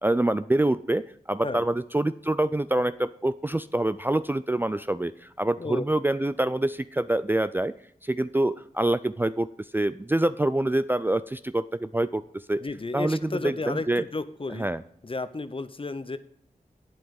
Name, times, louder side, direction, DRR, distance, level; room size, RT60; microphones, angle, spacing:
voice 1, 0.0-7.7 8.0-12.6 12.9-14.0 14.5-14.8, right 1 dB, 15° right, 12 dB, 0.4 m, -26 dB
voice 2, 12.6-14.7 15.0-16.2, left 3 dB, 35° left, 13 dB, 0.7 m, -33 dB
8.7 x 7.8 x 5.2 m, 0.67 s
cardioid pair, 45°, 15 cm